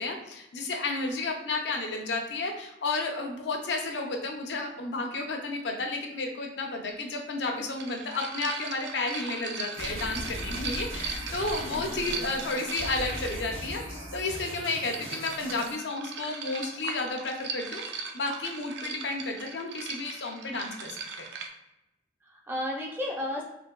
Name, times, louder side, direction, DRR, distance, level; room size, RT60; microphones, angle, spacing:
voice 1, 0.0-21.0, left 3 dB, 75° left, 3 dB, 0.5 m, -32 dB
sound 1, 6.9-7.0 7.7-13.6 14.5-21.5, right 5 dB, 80° right, 0.4 m, -39 dB
sound 2, 9.7-15.7, equal, 50° right, 1.1 m, -39 dB
voice 2, 11.7-12.3 22.2-23.4, left 1 dB, 10° right, -2 dB, 0.5 m, -34 dB
3.3 x 2.6 x 2.2 m, 0.87 s
head